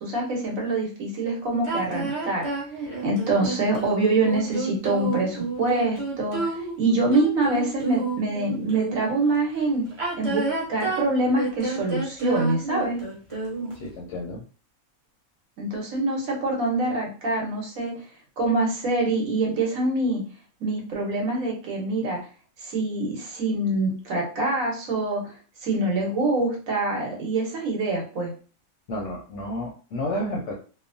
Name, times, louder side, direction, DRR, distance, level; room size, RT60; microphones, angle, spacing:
voice 1, 0.0-2.5 3.0-9.8 10.2-10.4 10.7-13.0 15.6-17.9 18.4-20.2 20.6-22.2 22.6-25.2 25.6-28.3, right 2 dB, 70° right, 0 dB, 1.3 m, -25 dB
sound 1, 1.6-9.2 9.9-13.9, right 3 dB, 30° right, 0.7 m, -30 dB
voice 2, 13.7-14.4 28.9-30.5, left 1 dB, 65° left, -1 dB, 0.8 m, -31 dB
2.9 x 2.1 x 2.6 m, 0.38 s
omnidirectional pair, 1.5 m